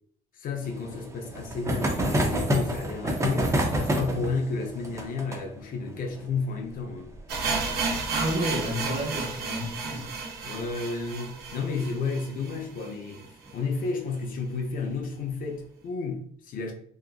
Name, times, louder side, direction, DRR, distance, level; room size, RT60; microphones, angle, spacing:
voice 1, 0.3-7.1 10.4-16.7, left 4 dB, 55° left, 0.5 m, -32 dB
sound 1, 0.6-9.8 10.1-10.2 10.4-10.5 10.8-10.9 12.3-12.6 13.2-13.7, right 1 dB, 15° right, 0.5 m, -30 dB
sound 2, 7.3-13.2 13.5-13.6 13.8-13.9 14.5-14.6, right 4 dB, 65° right, 0.7 m, -32 dB
voice 2, 8.1-10.1, equal, 40° right, 1.0 m, -30 dB
2.7 x 2.4 x 2.3 m
cardioid pair, 110°, 17 cm